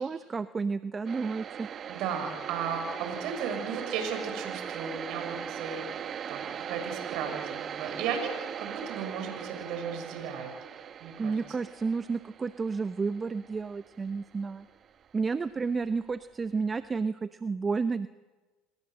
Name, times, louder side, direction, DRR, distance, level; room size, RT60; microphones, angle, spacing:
voice 1, 0.0-1.7 11.2-14.7 15.1-18.1, right 4 dB, 25° right, 13 dB, 0.8 m, -31 dB
sound 1, 1.1-14.9, right 8 dB, 45° right, 1.1 m, -39 dB
voice 2, 1.9-5.9 6.3-10.5 11.0-11.4, right 6 dB, 65° right, 6 dB, 6.8 m, -35 dB
29.0 x 20.5 x 7.7 m, 1.3 s
hypercardioid pair, 80°, 0 cm